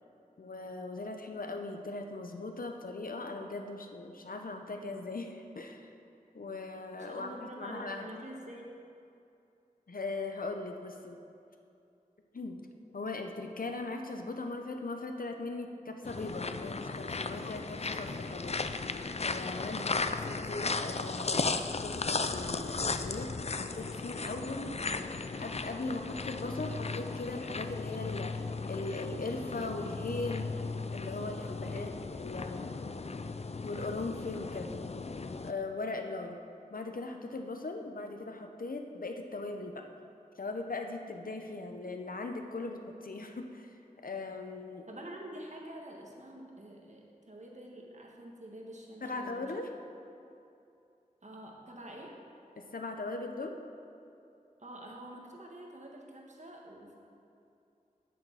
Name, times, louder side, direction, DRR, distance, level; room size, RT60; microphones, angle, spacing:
voice 1, 0.4-5.9 6.3-8.1 9.9-11.2 12.3-12.6 12.9-18.5 19.2-19.8 20.1-24.7 25.4-30.5 30.9-32.7 33.6-34.7 35.4-36.4 36.7-39.8 40.4-43.8 44.0-44.8 49.0-49.7 52.6-53.5, left 3 dB, 75° left, 4 dB, 0.9 m, -39 dB
voice 2, 6.9-8.6 19.7-20.2 31.7-31.9 44.9-49.6 51.2-52.1 54.6-56.9, right 1 dB, 55° right, -1 dB, 1.6 m, -47 dB
sound 1, 16.0-35.5, left 4 dB, 45° left, 0.4 m, -36 dB
8.1 x 7.6 x 6.2 m, 2.6 s
wide cardioid pair, 45°, 15 cm